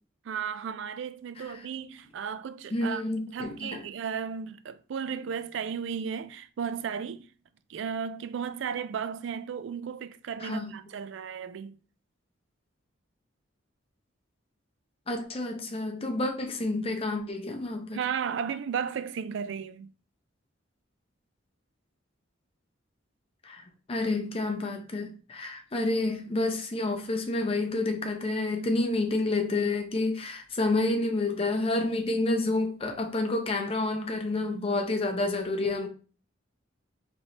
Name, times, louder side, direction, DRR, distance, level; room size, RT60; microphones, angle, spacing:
voice 1, 0.3-3.0 3.3-7.3 7.7-11.8 17.9-19.9, right 7 dB, 65° right, 0.3 m, -34 dB
voice 2, 2.7-3.8 10.4-10.7 15.1-18.1 23.4-35.9, left 2 dB, 30° left, 0.6 m, -29 dB
4.2 x 3.1 x 2.8 m
head